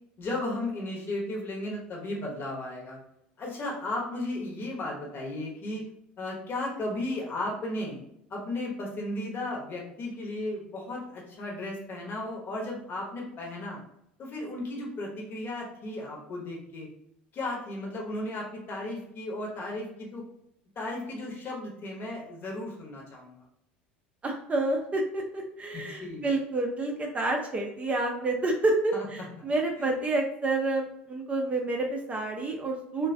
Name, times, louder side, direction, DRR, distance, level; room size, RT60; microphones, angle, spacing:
voice 1, 0.2-3.0 3.4-5.8 6.2-8.0 8.3-13.8 14.2-16.9 17.3-20.2 20.8-23.4 25.7-26.3 28.9-29.0 29.8-29.9, left 1 dB, 40° left, -2 dB, 0.9 m, -35 dB
voice 2, 24.2-33.1, right 2 dB, 25° right, 1 dB, 0.4 m, -29 dB
2.3 x 2.2 x 2.5 m, 0.76 s
figure-of-eight pair, 70°, 5 cm